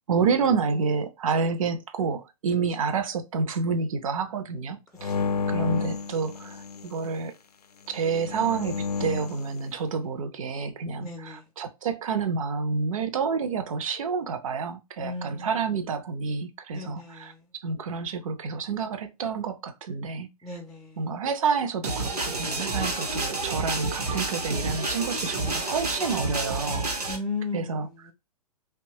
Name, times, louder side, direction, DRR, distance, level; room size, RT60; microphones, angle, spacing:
voice 1, 0.1-5.1 5.5-7.3 7.9-17.3 17.6-20.3 21.0-27.1 27.5-27.9, right 5 dB, 60° right, 0.6 m, -29 dB
sound 1, 5.0-7.0 8.0-9.5, left 5 dB, 85° left, 0.4 m, -31 dB
voice 2, 11.0-11.5 15.0-15.6 16.7-17.4 20.4-21.0 27.1-28.1, left 3 dB, 5° left, 0.4 m, -36 dB
sound 2, 21.8-27.2, right 2 dB, 85° right, 0.8 m, -29 dB
2.8 x 2.3 x 2.7 m
figure-of-eight pair, 115°, 19 cm